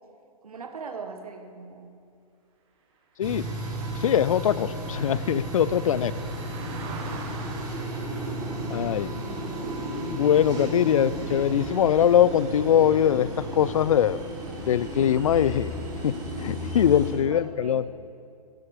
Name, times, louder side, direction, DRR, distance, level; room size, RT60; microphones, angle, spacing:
voice 1, 0.4-1.9 17.1-17.9, right 5 dB, 70° right, 6 dB, 1.4 m, -40 dB
sound 1, 3.2-17.1, right 1 dB, 20° right, 4.3 m, -33 dB
Car passing by, 3.3-12.8 13.2-13.4, right 5 dB, 45° right, 1.9 m, -46 dB
voice 2, 3.9-6.1 8.7-9.1 10.1-14.2 14.7-15.7 16.0-17.8, left 9 dB, 60° left, 18 dB, 0.5 m, -22 dB
17.5 x 12.0 x 4.9 m, 2.4 s
figure-of-eight pair, 125°, 19 cm